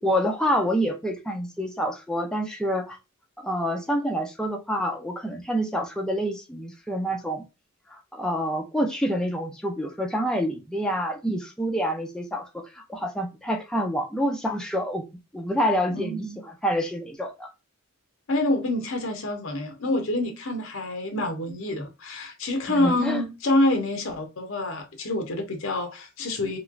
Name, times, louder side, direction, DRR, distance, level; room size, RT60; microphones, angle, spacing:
voice 1, 0.0-3.0 3.4-7.5 7.9-15.1 15.3-17.5 22.7-23.2, equal, 5° left, 0.5 m, -27 dB
voice 2, 15.9-16.4 18.3-26.6, left 1 dB, 75° left, 0.9 m, -27 dB
3.1 x 2.9 x 2.3 m
head